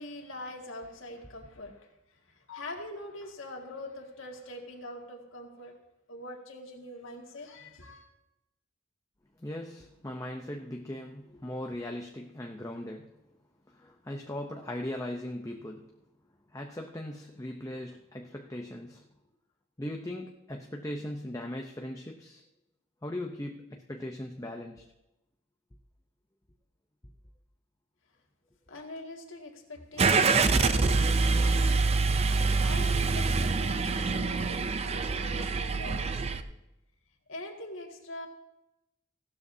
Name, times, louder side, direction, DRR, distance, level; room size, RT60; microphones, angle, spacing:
voice 1, 0.0-5.7 6.1-8.1 28.7-36.5 37.3-38.3, left 1 dB, 75° left, 2 dB, 2.1 m, -44 dB
voice 2, 9.4-13.2 13.7-15.9 16.5-19.0 19.8-22.4 23.0-24.8, left 1 dB, 15° left, 2 dB, 0.7 m, -39 dB
Car / Engine starting, 30.0-36.4, right 4 dB, 30° right, 0.5 m, -25 dB
16.5 x 12.5 x 2.8 m, 0.92 s
head